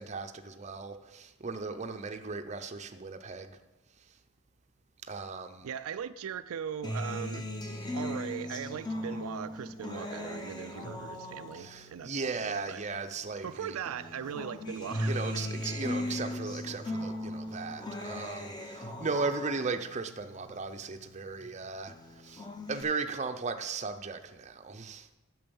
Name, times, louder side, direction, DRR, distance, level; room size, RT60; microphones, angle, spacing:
voice 1, 0.0-3.6 5.1-5.7 11.5-13.8 15.0-25.2, right 4 dB, 30° right, 0.6 m, -37 dB
voice 2, 5.6-7.5 7.9-12.8 13.4-15.3, right 8 dB, 75° right, 0.4 m, -39 dB
Acoustic guitar, 6.8-13.5 13.9-21.5 21.9-22.8, left 1 dB, 20° left, 1.0 m, -38 dB
8.9 x 6.3 x 7.0 m
head